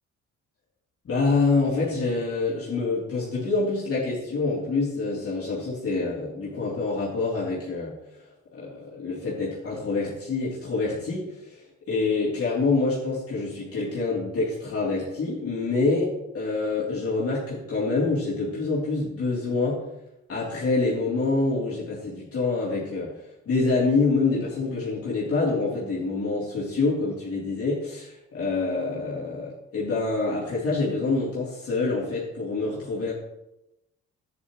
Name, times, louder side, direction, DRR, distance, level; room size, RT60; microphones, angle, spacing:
voice 1, 1.1-7.9 8.5-11.6 11.9-19.8 20.3-23.1 23.5-33.1, left 3 dB, 50° left, -7 dB, 3.4 m, -26 dB
11.0 x 9.7 x 3.2 m, 0.91 s
cardioid pair, 90°, 30 cm